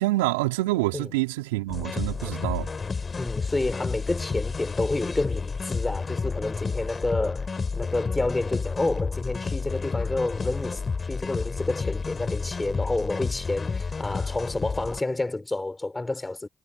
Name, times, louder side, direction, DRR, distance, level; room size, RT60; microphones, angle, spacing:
voice 1, 0.0-2.7, right 19 dB, 85° right, 4.3 m, -26 dB
sound 1, 1.7-15.0, left 4 dB, 40° left, 3.9 m, -30 dB
voice 2, 3.2-16.5, left 2 dB, 20° left, 6.5 m, -29 dB
hypercardioid pair, 45°, 0 cm